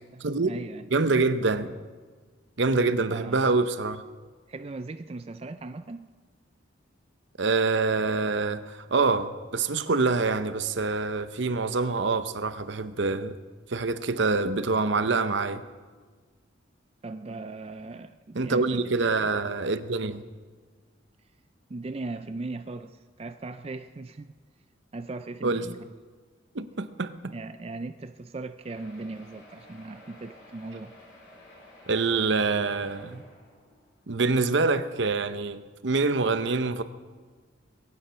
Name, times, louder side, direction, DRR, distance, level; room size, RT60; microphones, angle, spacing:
voice 1, 0.0-0.8 3.1-3.4 4.5-6.1 17.0-19.3 21.7-24.3 24.9-25.9 27.3-30.9, right 3 dB, 30° right, 0.4 m, -38 dB
voice 2, 0.9-1.8 2.6-4.0 7.4-13.4 13.7-15.6 18.3-20.2 25.4-25.7 26.5-27.3 31.9-33.2 34.1-36.8, right 3 dB, 65° right, 0.8 m, -26 dB
sound 1, 28.6-34.1 34.7-34.8 35.1-35.2 35.5-35.6, left 1 dB, 55° left, 5.1 m, -52 dB
22.0 x 9.7 x 5.7 m
head